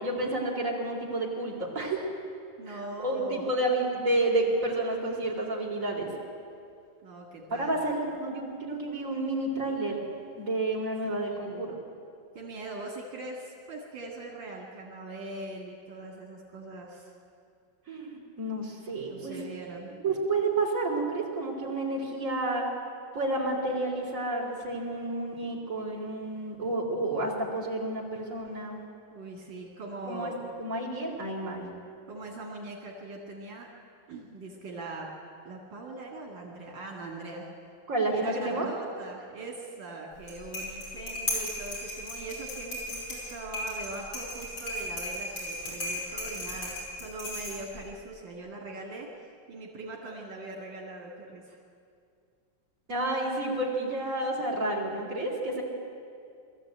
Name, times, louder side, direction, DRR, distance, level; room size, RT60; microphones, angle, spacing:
voice 1, 0.0-2.1 2.7-2.8 3.0-6.1 7.6-10.0 10.4-11.8 17.9-19.3 20.0-22.7 23.1-28.8 30.1-30.3 30.6-31.6 37.9-38.7 52.9-55.6, right 2 dB, 45° right, -2 dB, 3.8 m, -30 dB
voice 2, 2.6-3.5 7.0-7.8 11.3-11.6 12.3-17.1 19.1-19.9 29.1-30.4 32.1-33.7 34.1-35.1 35.4-37.5 38.1-49.1 49.5-51.6 54.6-54.7, right 2 dB, 80° right, -2 dB, 3.0 m, -41 dB
sound 1, 40.1-47.9, left 1 dB, 85° left, 6.2 m, -36 dB
21.5 x 14.0 x 8.8 m, 2.4 s
omnidirectional pair, 2.0 m